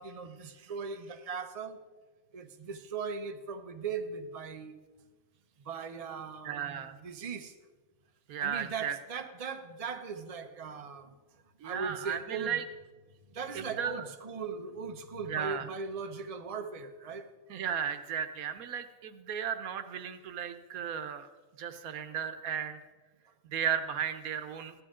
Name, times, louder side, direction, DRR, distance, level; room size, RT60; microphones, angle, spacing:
voice 1, 0.0-1.8 2.3-4.8 5.6-7.5 8.4-11.1 11.6-12.6 13.3-17.3, right 5 dB, 30° right, 7 dB, 0.8 m, -39 dB
voice 2, 6.4-6.9 8.3-9.0 11.6-12.6 13.5-14.0 15.3-15.6 17.5-21.3 21.6-22.8 23.5-24.7, right 8 dB, 90° right, 10 dB, 1.3 m, -35 dB
16.0 x 11.0 x 3.7 m, 1.2 s
omnidirectional pair, 1.5 m